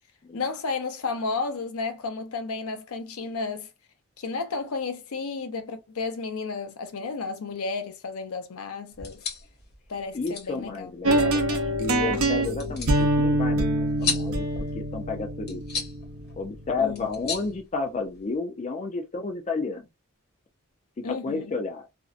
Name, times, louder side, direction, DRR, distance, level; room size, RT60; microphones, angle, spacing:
voice 1, 0.3-3.7 4.2-9.2 9.9-10.9 16.8-17.1 21.0-21.6, left 4 dB, 80° left, 0.6 m, -32 dB
sound 1, 8.9-18.4, left 5 dB, 50° left, 0.9 m, -37 dB
voice 2, 10.1-14.5 14.7-15.6 16.4-19.8 21.0-21.9, left 3 dB, 35° left, 0.4 m, -31 dB
sound 2, 11.0-17.1, right 1 dB, 70° right, 0.7 m, -25 dB
2.6 x 2.1 x 2.4 m
head